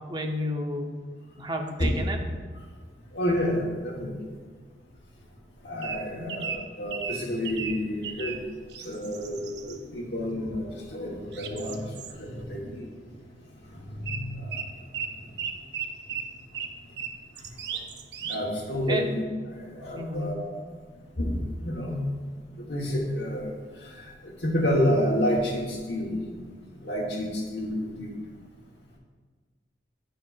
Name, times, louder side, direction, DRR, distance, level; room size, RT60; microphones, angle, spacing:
voice 1, 0.1-0.9 1.4-2.2 6.2-6.4 18.9-19.0 19.9-20.4, equal, 25° right, 3 dB, 0.7 m, -31 dB
voice 2, 3.1-4.1 5.6-8.4 8.8-11.9 12.2-12.9 13.9-14.5 18.3-19.2 19.6-20.5 21.2-21.4 21.6-22.0 22.7-23.6 24.0-26.2 26.8-28.1, equal, 70° left, -4 dB, 1.2 m, -29 dB
sound 1, 5.8-8.4 8.7-9.8 11.3-12.1 14.0-14.2 14.5-18.4, right 7 dB, 70° right, 0.5 m, -35 dB
10.5 x 5.6 x 2.4 m, 1.5 s
head